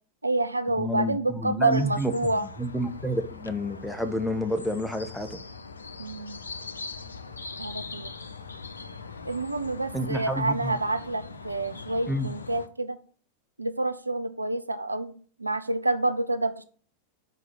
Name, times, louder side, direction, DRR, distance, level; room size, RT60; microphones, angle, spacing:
voice 1, 0.2-2.5 6.0-6.4 7.6-8.1 9.3-13.0 13.6-16.6, right 2 dB, 85° right, 10 dB, 0.5 m, -28 dB
voice 2, 0.8-2.1 2.6-5.4 9.9-10.7 12.1-12.3, equal, ahead, 7 dB, 0.7 m, -29 dB
sound 1, 1.7-12.7, left 4 dB, 75° left, 0.5 m, -41 dB
5.3 x 4.8 x 6.1 m, 0.43 s
figure-of-eight pair, 90°, 0 cm